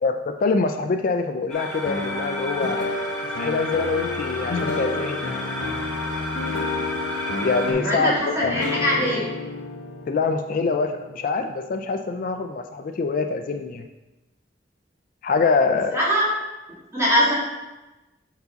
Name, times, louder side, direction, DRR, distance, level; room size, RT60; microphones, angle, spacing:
voice 1, 0.0-2.8 3.4-5.3 7.4-8.5 10.1-13.9 15.2-16.0, left 4 dB, 50° left, 7 dB, 0.3 m, -24 dB
sound 1, 1.5-7.7, equal, 5° left, 1.2 m, -32 dB
sound 2, 1.9-11.8, left 3 dB, 90° left, 0.6 m, -31 dB
voice 2, 7.8-9.3 15.9-16.3 16.9-17.3, equal, 15° right, -7 dB, 2.2 m, -22 dB
6.7 x 4.7 x 3.9 m, 1.1 s
head